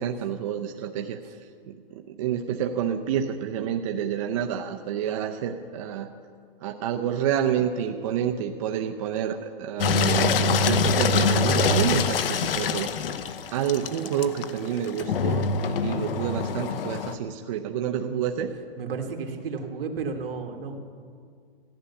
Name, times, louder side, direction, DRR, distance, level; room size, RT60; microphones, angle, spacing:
voice 1, 0.0-1.2 1.7-6.1 6.6-12.9 13.5-18.5, right 9 dB, 35° right, 3 dB, 0.6 m, -28 dB
Engine, 9.8-17.1, left 4 dB, 70° left, 0.9 m, -24 dB
voice 2, 18.8-20.7, right 5 dB, 70° right, 3 dB, 2.0 m, -33 dB
14.5 x 9.7 x 6.9 m, 2.2 s
hypercardioid pair, 165°, 30 cm